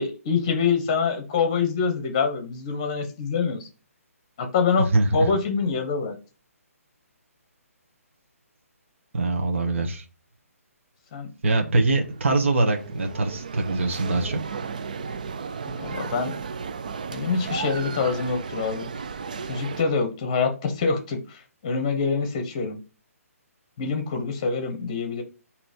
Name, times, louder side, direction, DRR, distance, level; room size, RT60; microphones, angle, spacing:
voice 1, 0.0-3.7 4.4-4.9 5.1-6.1 11.1-11.3 15.8-16.3 17.1-18.9 19.5-22.8 23.8-25.2, left 5 dB, 20° left, 6 dB, 0.9 m, -25 dB
voice 2, 4.8-5.3 9.1-10.0 11.4-14.4, right 2 dB, 50° right, 3 dB, 1.2 m, -23 dB
sound 1, 11.6-19.8, right 5 dB, 30° right, 0.3 m, -34 dB
8.5 x 3.0 x 5.1 m, 0.34 s
hypercardioid pair, 180°, 8 cm